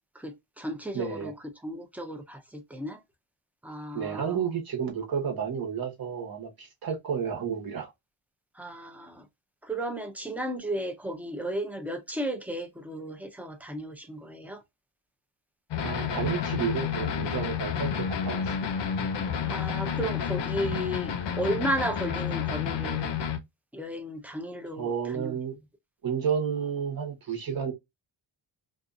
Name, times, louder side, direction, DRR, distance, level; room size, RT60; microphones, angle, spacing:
voice 1, 0.2-1.3 1.6-3.0 3.6-4.4 8.6-9.3 9.6-14.6 19.5-23.1 23.7-25.4, right 1 dB, 5° right, 0.4 m, -34 dB
voice 2, 0.9-1.3 3.9-7.9 15.8-18.7 24.8-25.5 26.0-27.7, right 7 dB, 50° right, 1.1 m, -31 dB
sound 1, 15.7-23.4, left 7 dB, 60° left, 0.6 m, -30 dB
2.5 x 2.4 x 2.5 m
wide cardioid pair, 150°, 47 cm